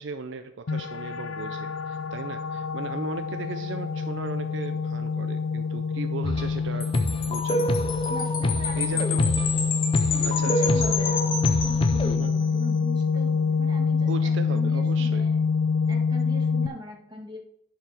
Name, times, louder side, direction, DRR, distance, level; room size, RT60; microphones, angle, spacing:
voice 1, 0.0-6.9 7.3-7.9 8.8-9.4 10.2-11.0 12.1-12.3 14.0-15.3, right 4 dB, 60° right, 9 dB, 0.5 m, -37 dB
sound 1, 0.7-16.7, left 5 dB, 85° left, 0.6 m, -26 dB
sound 2, 6.2-6.6 6.9-12.1, left 1 dB, 25° left, 0.5 m, -27 dB
Wind chime, 6.8-12.5, left 6 dB, 45° left, 1.2 m, -31 dB
voice 2, 8.1-9.2 10.0-15.3 15.9-17.4, left 1 dB, 20° right, 1 dB, 1.6 m, -40 dB
10.5 x 4.7 x 6.2 m, 0.75 s
head